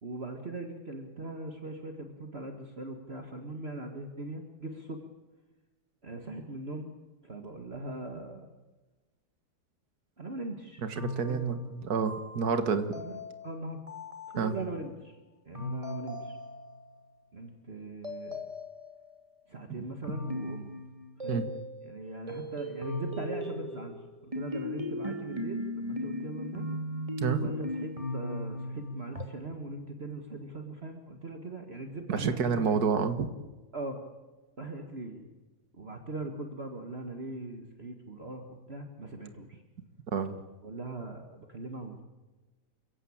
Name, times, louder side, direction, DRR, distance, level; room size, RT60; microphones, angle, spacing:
voice 1, 0.0-5.1 6.0-6.9 7.2-8.5 10.2-10.9 11.3-11.7 12.9-13.8 14.3-15.2 15.4-16.4 17.3-18.5 19.5-20.7 21.2-21.5 21.8-24.0 24.2-26.7 27.3-32.8 33.7-34.0 34.6-35.3 35.7-39.6 40.6-42.0, right 2 dB, 40° right, 4 dB, 2.1 m, -40 dB
voice 2, 10.8-13.0 14.4-14.5 21.3-21.4 27.2-27.4 32.1-33.3 40.1-40.4, right 5 dB, 65° right, 9 dB, 2.1 m, -29 dB
sound 1, 11.0-14.9 15.5-17.0 18.0-19.2 20.0-21.9 22.3-29.2, left 1 dB, 20° right, 2.9 m, -38 dB
29.0 x 16.5 x 8.7 m, 1.2 s
omnidirectional pair, 1.7 m